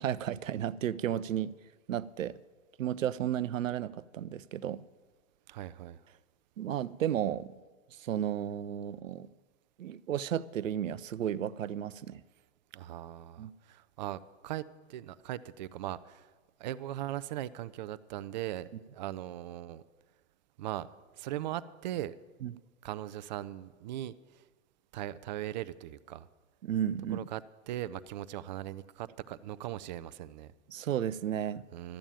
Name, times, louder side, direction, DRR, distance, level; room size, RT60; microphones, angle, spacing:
voice 1, 0.0-1.5 1.9-2.4 2.8-4.8 6.6-7.6 8.0-9.3 9.8-12.2 13.4-13.5 22.4-22.5 26.6-27.2 30.7-31.7, right 10 dB, 80° right, 0.6 m, -33 dB
voice 2, 5.5-6.0 12.7-14.6 14.9-16.3 16.6-19.8 20.6-20.9 21.2-22.1 22.8-24.1 24.9-26.3 27.1-27.4 27.7-30.5 31.7-32.0, right 13 dB, 35° right, 0.4 m, -39 dB
13.0 x 8.9 x 8.7 m
hypercardioid pair, 125°, 39 cm